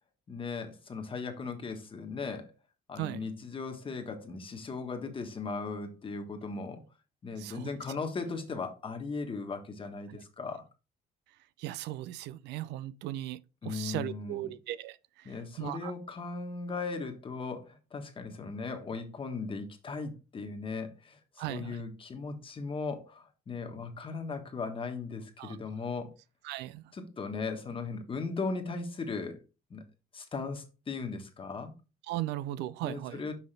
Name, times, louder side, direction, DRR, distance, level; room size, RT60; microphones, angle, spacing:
voice 1, 0.3-2.5 2.9-6.8 7.2-10.6 13.6-14.5 15.2-26.1 26.9-29.4 29.7-29.8 30.1-31.7 32.8-33.3, left 4 dB, 30° left, 1.3 m, -37 dB
voice 2, 11.6-15.0 15.6-15.9 21.4-21.8 25.4-25.6 26.4-26.8 32.1-33.2, right 14 dB, 85° right, 0.5 m, -37 dB
5.8 x 5.6 x 3.3 m
cardioid pair, 110°, 17 cm